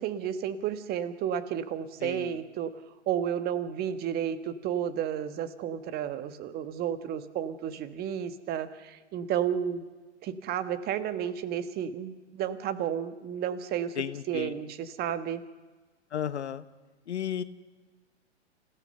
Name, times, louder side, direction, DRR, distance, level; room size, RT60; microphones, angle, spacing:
voice 1, 0.0-2.7 3.1-9.8 10.2-14.0 14.3-15.4, right 9 dB, 25° right, 11 dB, 1.4 m, -32 dB
voice 2, 2.0-2.3 14.0-14.5 16.1-16.6 17.1-17.4, left 9 dB, 70° left, 13 dB, 1.2 m, -33 dB
28.0 x 16.0 x 6.8 m, 1.3 s
hypercardioid pair, 115°, 35 cm